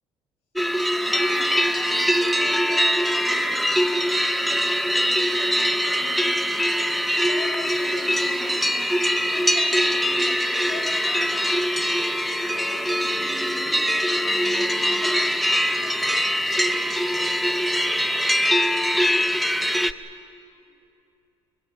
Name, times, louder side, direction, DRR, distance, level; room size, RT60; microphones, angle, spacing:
sound 1, 0.5-19.9, equal, ahead, 0.5 m, -22 dB
voice 1, 0.9-12.1 12.4-16.4 20.1-20.6, left 2 dB, 60° left, -2 dB, 7.9 m, -42 dB
24.0 x 22.0 x 7.1 m, 2.6 s
cardioid pair, 150°, 11 cm